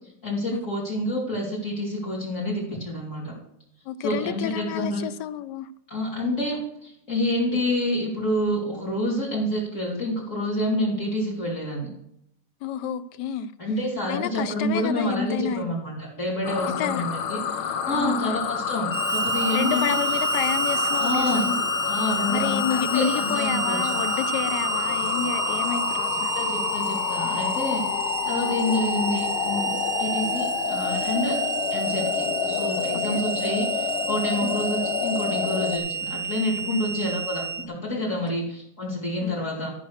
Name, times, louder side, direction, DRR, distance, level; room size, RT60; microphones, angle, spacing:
voice 1, 0.2-3.3 4.0-5.0 5.9-11.9 13.6-20.0 21.0-21.5 21.9-23.9 26.3-27.8 28.2-31.4 31.7-39.7, left 1 dB, 35° left, -3 dB, 3.3 m, -28 dB
voice 2, 3.9-5.7 12.6-13.5 14.1-15.7 16.8-17.0 17.9-18.4 19.5-21.7 22.3-26.3 28.7-29.0 32.9-33.2 34.4-34.6 36.7-36.9 38.1-38.2 39.2-39.4, left 8 dB, 70° left, 15 dB, 1.1 m, -30 dB
sound 1, 16.4-35.8, left 8 dB, 85° left, 1.7 m, -28 dB
Harmonica, 18.9-37.6, right 4 dB, 25° right, 1.2 m, -30 dB
13.5 x 5.4 x 6.4 m, 0.75 s
omnidirectional pair, 2.3 m